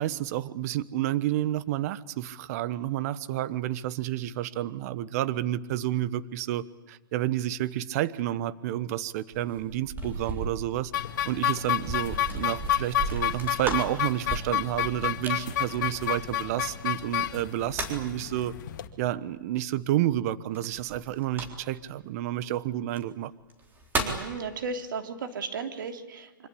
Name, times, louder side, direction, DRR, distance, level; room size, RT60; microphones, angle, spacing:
voice 1, 0.0-10.9 11.2-18.5 19.0-23.3, right 13 dB, 45° right, 17 dB, 1.1 m, -30 dB
sound 1, 9.3-16.7 17.4-18.2 20.5-21.9 22.8-23.0 23.5-24.3, right 2 dB, 15° right, 3.9 m, -36 dB
sound 2, 10.9-18.9, left 11 dB, 60° left, 2.1 m, -30 dB
voice 2, 24.0-26.5, right 4 dB, 70° right, 6 dB, 3.1 m, -35 dB
25.5 x 25.0 x 8.5 m, 1.2 s
hypercardioid pair, 135°, 11 cm